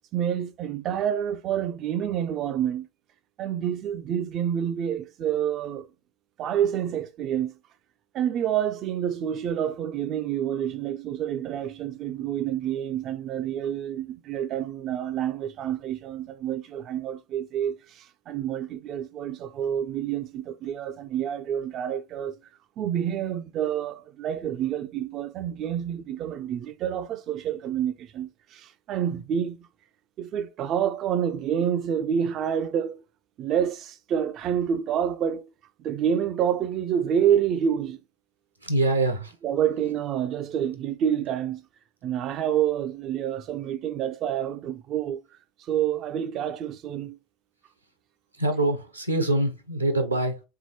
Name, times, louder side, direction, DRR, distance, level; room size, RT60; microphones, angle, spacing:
voice 1, 0.1-2.9 3.4-5.9 6.4-7.6 8.1-22.4 22.8-29.7 30.2-33.0 33.4-35.4 35.8-38.0 39.4-41.6 42.0-45.2 45.7-47.2, right 9 dB, 40° right, 0.4 m, -28 dB
voice 2, 38.6-39.3 48.4-50.4, right 2 dB, 90° right, 0.9 m, -24 dB
3.6 x 3.6 x 2.9 m
figure-of-eight pair, 75°, 0 cm